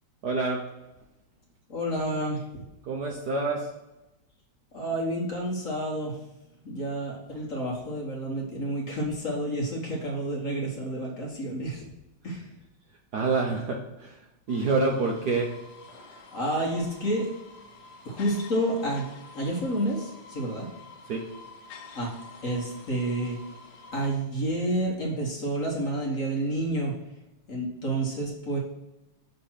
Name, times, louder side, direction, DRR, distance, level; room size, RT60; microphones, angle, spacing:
voice 1, 0.2-0.6 2.8-3.7 13.1-14.2 14.5-15.5 21.1-21.3, right 3 dB, 65° right, 0 dB, 1.0 m, -27 dB
voice 2, 1.7-2.6 4.7-6.1 6.6-11.8 12.2-12.4 16.3-17.3 18.0-19.1 19.3-20.7 21.9-22.1 22.4-23.4 23.9-26.9 27.5-28.6, right 1 dB, 45° left, -2 dB, 1.3 m, -29 dB
sound 1, 14.5-24.2, left 3 dB, 60° left, 1.2 m, -48 dB
6.6 x 3.4 x 5.7 m, 0.97 s
omnidirectional pair, 2.4 m